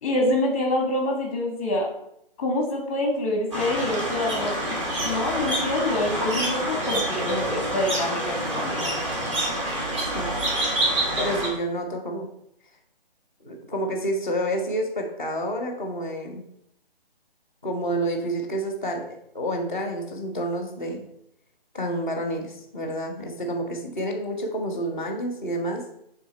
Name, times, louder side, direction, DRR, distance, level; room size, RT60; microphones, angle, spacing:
voice 1, 0.0-1.9 2.4-4.8 5.0-8.9, left 1 dB, 15° left, 1 dB, 0.9 m, -26 dB
sound 1, 3.5-11.5, right 1 dB, 30° right, 1.8 m, -27 dB
voice 2, 11.2-12.3 13.4-16.4 17.6-21.0 21.7-25.8, right 1 dB, 10° right, -8 dB, 0.6 m, -29 dB
9.3 x 3.5 x 4.3 m, 0.75 s
hypercardioid pair, 165°, 30 cm